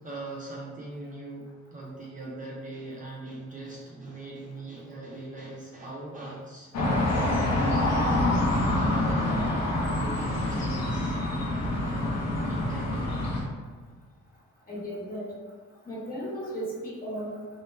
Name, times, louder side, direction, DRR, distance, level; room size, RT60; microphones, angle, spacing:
voice 1, 0.0-1.4 1.7-7.0 8.7-9.3 9.8-11.3 11.8-13.2, right 2 dB, 25° right, -5 dB, 0.4 m, -40 dB
sound 1, 6.7-13.4, left 1 dB, 60° left, 0.7 m, -26 dB
voice 2, 14.7-15.3 15.9-17.4, equal, 30° left, -6 dB, 1.0 m, -35 dB
2.1 x 2.1 x 3.1 m, 1.5 s
cardioid pair, 90°, 30 cm